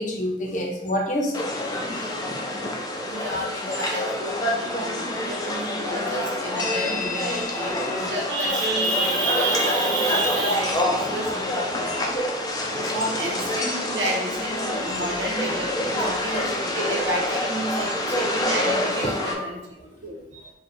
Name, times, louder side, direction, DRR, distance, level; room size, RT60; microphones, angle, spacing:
voice 1, 0.0-1.5 1.9-2.3 5.0-5.2 7.6-8.1 11.8-12.0 16.2-16.3 19.0-19.5 19.8-19.9, left 1 dB, 45° left, 1 dB, 0.8 m, -30 dB
sound 1, 1.3-19.3, left 1 dB, 20° left, 0.5 m, -27 dB
voice 2, 3.1-12.2 12.7-19.6 20.0-20.5, right 1 dB, 90° right, -1 dB, 1.3 m, -30 dB
4.9 x 2.3 x 4.6 m, 0.93 s
head